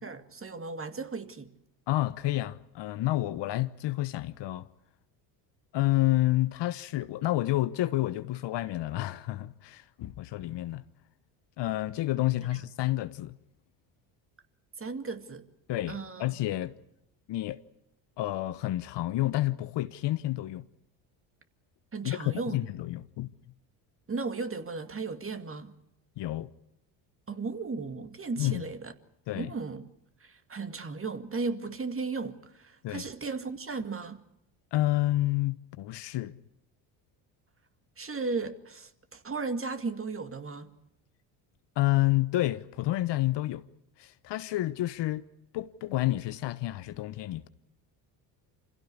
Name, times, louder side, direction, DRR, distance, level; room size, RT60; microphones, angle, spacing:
voice 1, 0.0-1.5 12.5-12.6 14.8-15.4 15.9-16.4 21.9-22.6 24.1-25.7 27.3-28.9 29.3-29.9 30.2-34.2 38.0-40.7, right 4 dB, 25° right, 2.2 m, -35 dB
voice 2, 1.9-4.7 5.7-10.8 11.6-13.4 15.7-16.7 17.3-17.6 18.2-20.6 22.0-23.3 26.2-26.5 28.4-28.6 29.3-29.5 32.8-33.1 34.7-36.3 41.8-43.6 44.0-45.2 45.5-47.5, left 16 dB, 60° left, 1.1 m, -29 dB
26.0 x 16.5 x 9.8 m
supercardioid pair, 75°, 49 cm